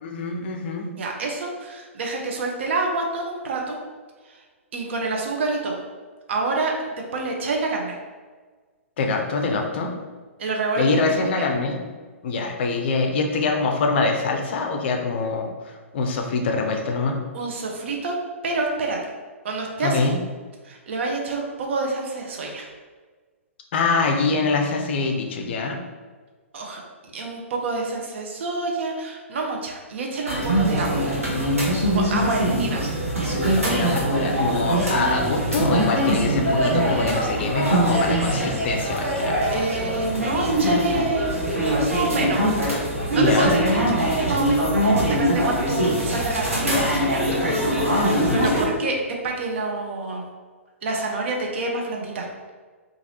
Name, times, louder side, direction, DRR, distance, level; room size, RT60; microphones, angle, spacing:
voice 1, 0.0-1.0 9.0-10.0 10.8-11.9 12.2-17.2 19.8-20.2 23.7-25.8 33.7-39.4 43.1-43.5 48.3-48.6, left 3 dB, 50° left, 3 dB, 0.5 m, -24 dB
voice 2, 1.0-3.8 4.3-4.4 4.7-5.8 6.3-7.9 10.4-11.3 17.3-18.2 18.4-19.0 19.4-20.1 20.6-22.7 26.5-26.8 27.1-31.1 31.8-32.9 39.5-42.4 43.1-47.5 48.3-48.9 49.2-50.2 50.8-52.3, right 3 dB, 60° right, 0 dB, 0.6 m, -27 dB
sound 1, 30.3-48.6, equal, 85° right, 1.0 m, -22 dB
3.2 x 2.4 x 2.7 m, 1.4 s
figure-of-eight pair, 115°, 7 cm